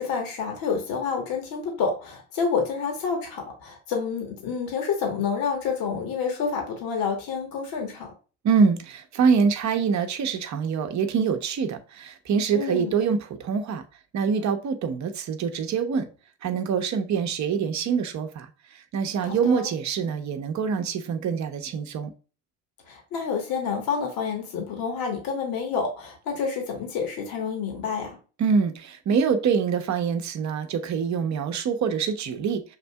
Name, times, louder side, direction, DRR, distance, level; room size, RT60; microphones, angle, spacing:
voice 1, 0.0-8.1 12.5-12.9 19.2-19.7 22.9-28.2, left 5 dB, 55° left, 1.4 m, -28 dB
voice 2, 8.4-13.8 14.1-16.1 16.4-18.5 18.9-22.1 28.4-32.6, right 6 dB, 45° right, 0.8 m, -25 dB
6.5 x 2.6 x 2.2 m
hypercardioid pair, 70°, 41 cm